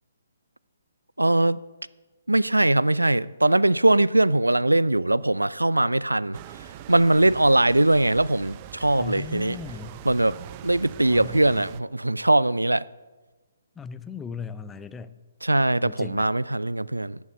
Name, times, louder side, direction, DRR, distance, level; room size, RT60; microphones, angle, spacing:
voice 1, 1.2-1.6 2.3-9.6 10.0-12.9 15.4-17.2, right 1 dB, 85° right, 0.4 m, -21 dB
sound 1, 6.3-11.8, right 11 dB, 30° right, 0.6 m, -42 dB
voice 2, 9.0-10.0 11.1-11.5 13.8-15.2 15.8-16.3, left 5 dB, 10° left, 0.5 m, -37 dB
12.0 x 9.4 x 7.9 m
figure-of-eight pair, 130°, 0 cm